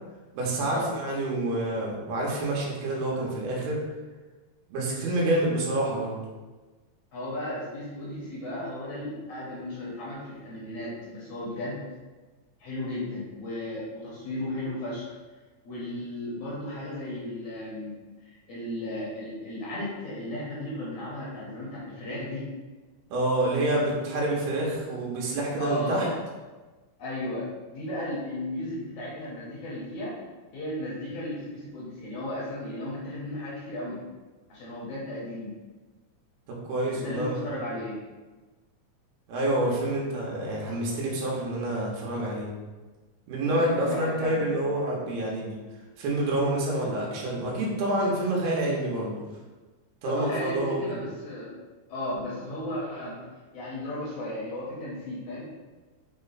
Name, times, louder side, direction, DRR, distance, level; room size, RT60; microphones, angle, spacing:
voice 1, 0.3-3.8 4.7-6.2 23.1-26.1 36.6-37.5 39.3-42.5 43.3-45.5 46.0-49.1 50.0-51.0, right 1 dB, 85° right, -4 dB, 2.6 m, -27 dB
voice 2, 7.1-11.9 12.6-15.1 15.6-18.0 18.2-22.5 25.6-26.2 27.0-30.2 30.5-34.0 34.5-35.5 36.8-38.1 43.4-44.6 48.6-48.8 49.2-49.3 50.0-51.6 51.9-53.2 53.5-55.5, left 1 dB, 70° left, -7 dB, 2.0 m, -35 dB
6.0 x 2.1 x 3.9 m, 1.3 s
omnidirectional pair, 4.1 m